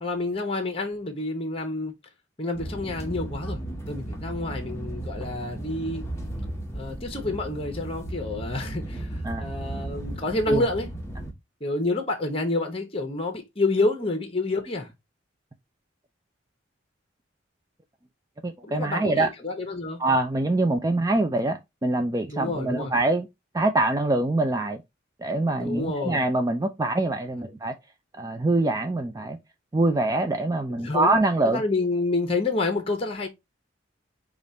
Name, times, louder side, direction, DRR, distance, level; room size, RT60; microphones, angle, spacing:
voice 1, 0.0-1.9 2.4-3.6 3.9-6.0 6.7-10.9 11.6-14.9 18.6-20.0 22.3-22.9 25.6-26.2 27.4-27.6 30.7-31.1 31.4-33.3, left 2 dB, 30° left, 1.0 m, -28 dB
sound 1, 2.6-11.3, right 1 dB, 15° left, 1.2 m, -35 dB
voice 2, 18.4-19.3 20.0-23.3 23.5-24.8 25.2-27.7 28.2-29.4 29.7-31.6, right 2 dB, 20° right, 0.4 m, -24 dB
5.1 x 2.5 x 4.1 m
head